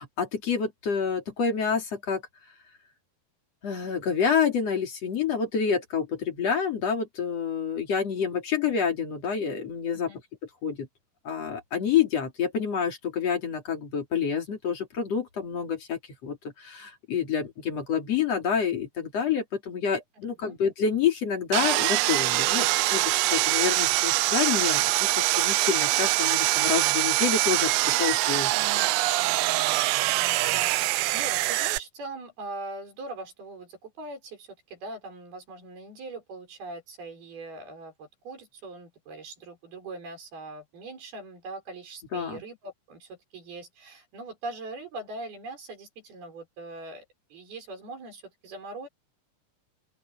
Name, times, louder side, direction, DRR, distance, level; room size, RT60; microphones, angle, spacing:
voice 1, 0.0-2.2 3.6-10.1 10.6-10.9 11.3-28.7 42.1-42.4, left 7 dB, 40° left, 3.6 m, -28 dB
voice 2, 20.2-20.6 30.0-47.1 47.3-48.9, right 2 dB, 65° right, 8.2 m, -41 dB
Sawing, 21.5-31.8, right 19 dB, 90° right, 2.9 m, -24 dB
open air
omnidirectional pair, 4.8 m